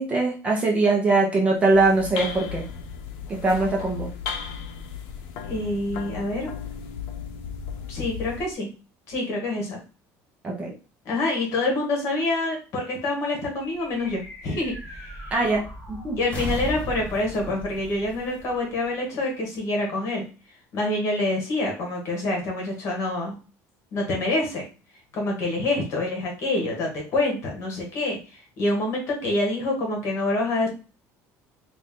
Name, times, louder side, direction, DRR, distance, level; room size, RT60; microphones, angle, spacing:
voice 1, 0.0-2.6 3.4-4.1 10.4-10.7 15.3-15.6 15.9-16.2, right 3 dB, 20° right, -1 dB, 0.7 m, -21 dB
sound 1, 1.6-8.5, left 7 dB, 85° left, 0.6 m, -35 dB
voice 2, 5.5-6.5 7.9-8.7 9.1-9.8 11.0-15.3 16.2-20.3 20.7-23.4 23.9-24.6 25.1-30.7, left 2 dB, 45° left, 1 dB, 1.4 m, -26 dB
sound 2, 13.6-19.3, equal, 20° left, 1.1 m, -37 dB
3.3 x 2.6 x 3.6 m, 0.34 s
cardioid pair, 170°, 7 cm